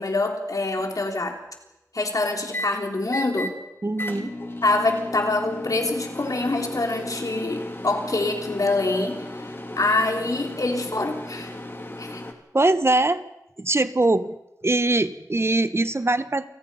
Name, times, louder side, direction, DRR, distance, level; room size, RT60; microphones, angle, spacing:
voice 1, 0.0-1.4 1.9-3.5 4.6-9.3 9.8-11.5 12.0-12.2, left 2 dB, 65° left, 3 dB, 3.8 m, -25 dB
sound 1, 0.8-1.1 2.5-2.7 3.1-3.5 4.0-12.3, left 1 dB, 35° left, 3.2 m, -35 dB
voice 2, 3.8-4.3 12.5-13.2 13.6-14.4 14.6-16.6, right 2 dB, 40° right, 12 dB, 1.1 m, -22 dB
28.5 x 19.0 x 5.7 m, 0.91 s
wide cardioid pair, 55°, 6 cm